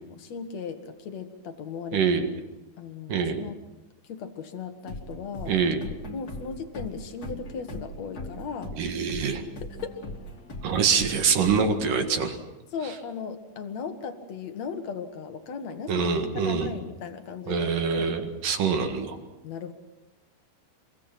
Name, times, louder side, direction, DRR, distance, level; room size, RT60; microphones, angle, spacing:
voice 1, 0.0-2.0 2.8-3.6 4.0-5.5 6.1-8.8 9.8-10.0 12.7-18.1 19.4-19.7, left 6 dB, 55° left, 7 dB, 2.0 m, -37 dB
voice 2, 1.9-2.3 3.1-3.4 5.5-5.8 8.8-9.4 10.6-12.4 15.9-16.7 17.5-19.2, right 6 dB, 55° right, 6 dB, 3.0 m, -25 dB
sound 1, 4.8-12.5, left 1 dB, 25° left, 2.3 m, -40 dB
26.0 x 24.0 x 6.0 m, 1.0 s
omnidirectional pair, 5.3 m